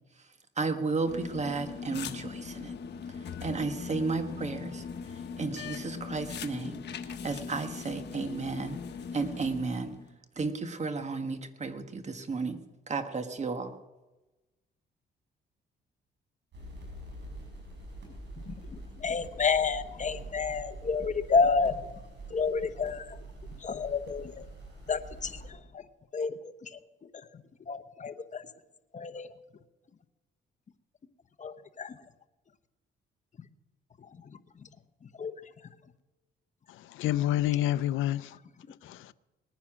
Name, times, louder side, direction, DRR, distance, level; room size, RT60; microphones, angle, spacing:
voice 1, 0.6-2.7 3.4-4.8 5.4-6.8 7.2-8.8 9.1-9.9 10.4-12.6 12.9-13.7, right 4 dB, 35° right, 1.6 m, -33 dB
sound 1, 1.0-10.1, left 6 dB, 60° left, 1.3 m, -40 dB
sound 2, 16.5-25.5, right 2 dB, 65° right, 6.1 m, -45 dB
voice 2, 19.0-21.9 22.3-23.2 23.6-24.4 24.9-25.8 26.1-26.8 27.7-28.4 28.9-29.3 31.4-31.9 35.2-35.3, left 5 dB, 40° left, 1.0 m, -30 dB
voice 3, 36.7-38.4 38.8-39.1, left 13 dB, 85° left, 0.5 m, -29 dB
20.0 x 10.0 x 6.1 m
cardioid pair, 90°, 20 cm